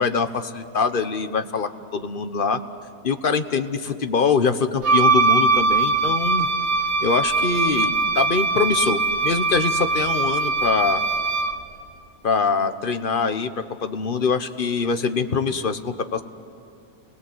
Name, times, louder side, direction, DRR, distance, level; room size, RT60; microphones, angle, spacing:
voice 1, 0.0-2.6 3.0-6.5 7.0-11.0 12.2-16.2, left 5 dB, 50° left, 9 dB, 1.2 m, -23 dB
Wind instrument woodwind instrument, 4.8-11.6, right 3 dB, 75° right, 1.5 m, -21 dB
30.0 x 21.5 x 7.9 m, 2.7 s
omnidirectional pair, 1.2 m